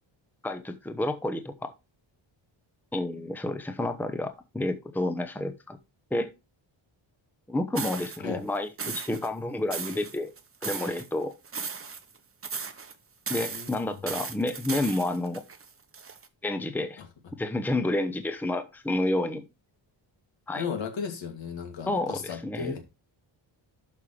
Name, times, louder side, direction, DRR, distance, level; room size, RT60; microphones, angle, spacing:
voice 1, 0.4-1.7 2.9-5.8 6.1-6.3 7.5-10.3 10.6-11.3 13.3-15.4 16.4-17.0 17.4-19.4 20.5-20.6 21.9-22.7, left 2 dB, 5° left, 0.9 m, -30 dB
sound 1, 7.8-8.2 8.8-9.3 9.7-11.1 11.4-12.2 12.4-12.9 13.3-16.3, right 5 dB, 30° right, 1.0 m, -36 dB
voice 2, 13.5-14.2 17.0-17.1 20.5-22.8, left 6 dB, 70° left, 2.7 m, -36 dB
12.0 x 5.5 x 3.3 m
cardioid pair, 115°, 47 cm